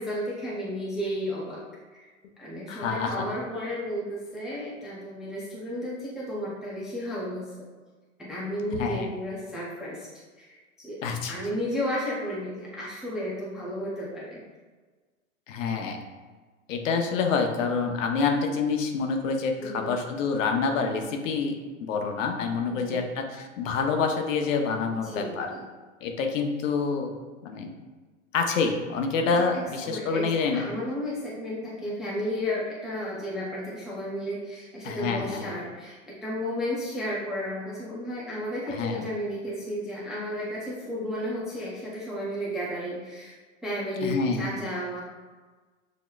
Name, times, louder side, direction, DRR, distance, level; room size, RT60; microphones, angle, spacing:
voice 1, 0.0-1.6 1.9-2.0 2.4-7.5 8.2-10.1 10.4-11.0 11.3-14.4 19.6-20.0 22.7-23.1 24.9-25.6 29.5-35.9 36.2-43.4 43.6-45.0, equal, ahead, -7 dB, 0.3 m, -33 dB
voice 2, 2.7-3.1 8.7-9.1 11.0-11.3 15.5-16.0 16.7-21.5 21.8-25.5 26.0-27.1 27.4-27.7 28.3-30.6 34.8-35.5 38.8-39.0 44.0-44.6, left 5 dB, 75° left, 4 dB, 0.8 m, -27 dB
6.3 x 2.9 x 2.2 m, 1.4 s
hypercardioid pair, 130°, 40 cm